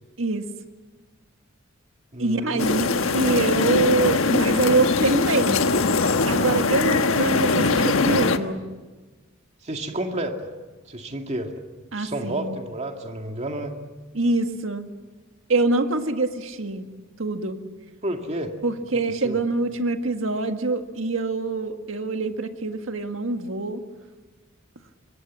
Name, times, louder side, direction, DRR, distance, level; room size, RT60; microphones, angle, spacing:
voice 1, 0.2-0.5 2.2-5.6 6.3-8.6 11.9-12.6 14.1-14.9 15.5-16.9 17.2-17.6 18.6-23.8, right 3 dB, 70° right, 6 dB, 1.8 m, -25 dB
voice 2, 2.1-2.7 9.6-10.4 10.9-11.5 12.0-13.7 18.0-18.5 19.2-19.4, right 1 dB, 35° right, 3 dB, 2.3 m, -30 dB
sound 1, 2.6-8.4, left 3 dB, 85° left, 1.3 m, -21 dB
27.0 x 22.5 x 7.5 m, 1.3 s
head